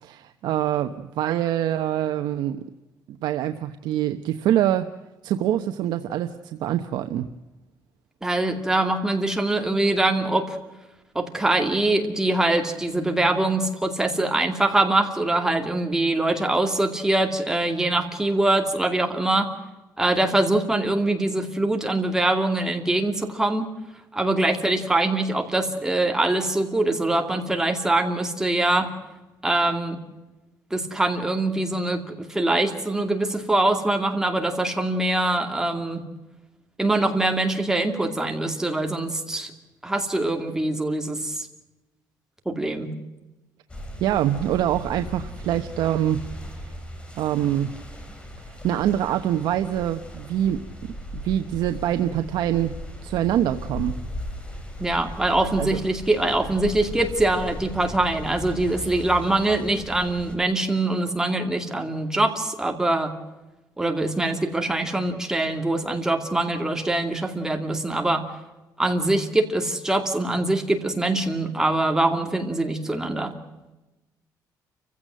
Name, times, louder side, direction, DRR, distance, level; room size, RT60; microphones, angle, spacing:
voice 1, 0.0-2.6 3.2-4.9 5.2-7.3 44.0-46.2 46.6-46.7 47.2-47.7 48.6-50.6 51.2-52.7 53.0-53.9 55.6-55.8, right 11 dB, 85° right, 7 dB, 1.0 m, -24 dB
voice 2, 8.2-10.6 11.1-19.5 20.0-23.7 24.1-28.9 29.4-30.0 30.7-36.0 36.8-39.5 39.8-41.5 42.5-42.9 54.8-63.1 63.8-68.2 68.8-73.4, right 2 dB, 10° right, 4 dB, 2.4 m, -23 dB
sound 1, 43.7-60.4, left 1 dB, 15° left, 3.2 m, -37 dB
29.5 x 16.0 x 7.6 m, 1.1 s
cardioid pair, 155°, 7 cm